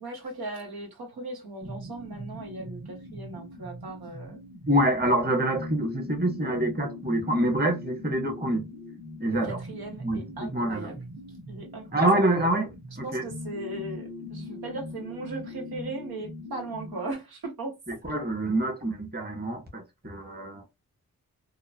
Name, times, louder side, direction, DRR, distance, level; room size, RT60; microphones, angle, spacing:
voice 1, 0.0-4.4 9.3-11.0 11.5-12.2 13.0-17.8, right 2 dB, 80° right, 1.2 m, -38 dB
sound 1, 1.6-17.1, left 1 dB, 45° right, 1.6 m, -41 dB
voice 2, 4.7-8.6 9.2-9.6 10.0-10.9 11.9-12.7 13.0-13.2 17.9-20.6, right 1 dB, 25° right, 1.2 m, -26 dB
2.9 x 2.2 x 2.4 m
cardioid pair, 40°, 37 cm